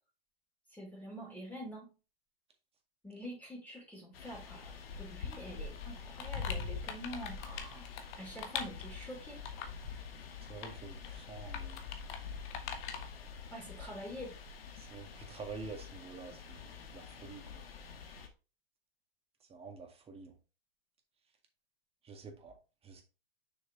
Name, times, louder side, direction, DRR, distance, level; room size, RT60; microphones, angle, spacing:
voice 1, 0.7-1.9 3.0-7.9 8.2-9.4 13.5-14.3, equal, 5° left, 3.7 m, -46 dB
sound 1, 4.1-18.3, left 5 dB, 75° left, 1.5 m, -45 dB
sound 2, 5.3-5.4 5.7-9.0 9.4-9.8 10.3-10.7 11.0-11.1 11.5-12.2 12.4-13.1, left 7 dB, 55° left, 1.4 m, -43 dB
voice 2, 10.5-11.8 14.8-17.6 19.5-20.3 22.0-22.5 22.8-23.0, right 4 dB, 20° right, 2.0 m, -48 dB
6.4 x 6.4 x 3.1 m
hypercardioid pair, 105°, 30 cm